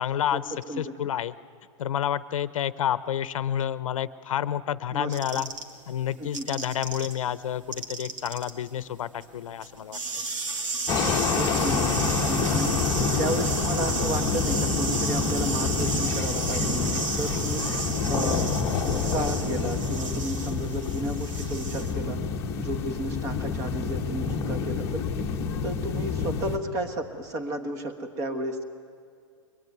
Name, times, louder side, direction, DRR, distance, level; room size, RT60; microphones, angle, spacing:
voice 1, 0.0-1.3 1.8-5.5 5.9-10.0, left 10 dB, 80° left, 15 dB, 0.8 m, -29 dB
voice 2, 0.7-1.0 4.9-5.4 6.2-6.7 11.3-12.8 13.2-18.5 18.8-22.2 22.6-25.0 25.6-28.6, right 1 dB, 20° right, 7 dB, 1.4 m, -33 dB
sound 1, 5.1-7.1 7.4-21.9, right 3 dB, 70° right, 2.7 m, -33 dB
sound 2, 10.9-26.6, left 5 dB, 15° left, 1.1 m, -28 dB
23.5 x 22.0 x 9.4 m, 2.3 s
supercardioid pair, 180°, 17 cm